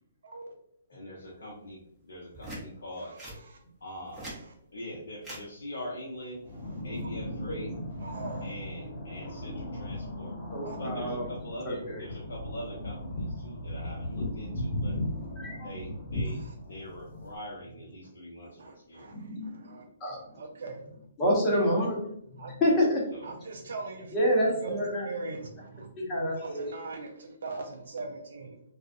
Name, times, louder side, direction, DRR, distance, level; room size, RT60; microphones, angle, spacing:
voice 1, 0.9-1.8 2.1-3.1 3.8-4.3 4.7-6.4 6.8-7.7 8.4-9.5 9.8-10.3 10.8-14.9 15.6-15.9 16.1-16.4 16.7-18.5 18.9-19.0, left 1 dB, 70° left, -4 dB, 0.6 m, -42 dB
sound 1, 2.3-2.6 3.2-3.4 4.0-4.4 5.2-5.4 6.7-7.0, right 1 dB, 10° right, 0.9 m, -41 dB
voice 2, 3.0-3.6 4.1-4.5 6.5-7.1 8.0-8.5 10.6-10.8 15.0-15.2 16.1-16.6 17.7-17.8 18.5-19.9 20.3-20.8 22.4-22.5 23.2-24.1 24.6-28.6, right 3 dB, 65° right, 2 dB, 0.3 m, -42 dB
sound 2, 6.4-17.4, left 1 dB, 45° left, 0.9 m, -37 dB
voice 3, 10.5-11.3 11.6-12.0 14.4-14.5 15.4-16.0 19.1-19.5 20.0-20.2 21.2-22.1 22.6-23.0 24.1-25.1 26.0-26.6, equal, 25° left, -4 dB, 0.9 m, -28 dB
2.4 x 2.3 x 2.5 m, 0.73 s
figure-of-eight pair, 130°, 0 cm